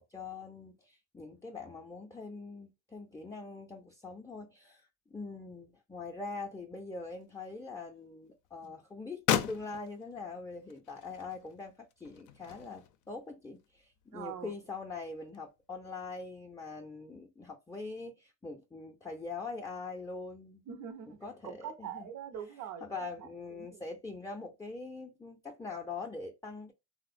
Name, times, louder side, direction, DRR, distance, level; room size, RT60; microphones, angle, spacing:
voice 1, 0.0-20.6 21.1-22.1 22.8-26.7, left 3 dB, 10° left, 0.4 m, -43 dB
sound 1, 6.8-8.0 8.4-15.6, left 10 dB, 85° left, 0.5 m, -38 dB
voice 2, 14.1-14.6 20.7-21.2 21.4-23.8, right 8 dB, 70° right, 0.6 m, -44 dB
3.2 x 2.0 x 2.4 m
cardioid pair, 90°, 30 cm